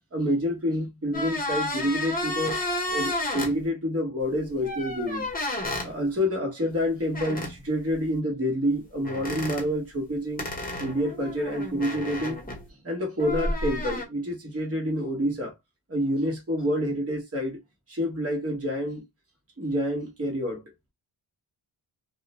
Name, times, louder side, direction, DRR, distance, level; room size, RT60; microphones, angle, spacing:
voice 1, 0.1-2.6 2.9-5.3 5.8-10.5 10.8-12.4 12.8-15.5 15.9-17.6 17.9-19.0 19.6-20.6, equal, 30° right, 1.0 m, -28 dB
sound 1, 1.1-3.5 4.6-5.9 7.1-7.6 9.0-9.7 10.4-12.7 13.2-14.0, left 1 dB, 20° left, 0.8 m, -31 dB
2.4 x 2.0 x 2.9 m
wide cardioid pair, 80°, 49 cm